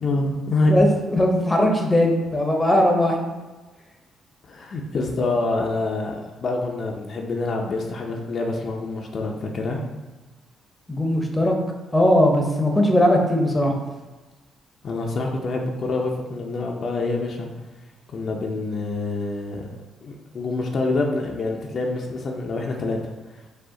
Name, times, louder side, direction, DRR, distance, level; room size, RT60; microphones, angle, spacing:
voice 1, 0.0-0.8 4.4-9.8 14.8-17.5 18.1-19.7 20.0-23.0 23.3-23.4, left 2 dB, 55° left, 0 dB, 0.5 m, -26 dB
voice 2, 0.7-3.2 10.9-11.6 11.9-13.7, left 1 dB, 10° left, 2 dB, 0.7 m, -19 dB
4.9 x 2.4 x 3.7 m, 1.2 s
cardioid pair, 90°, 0 cm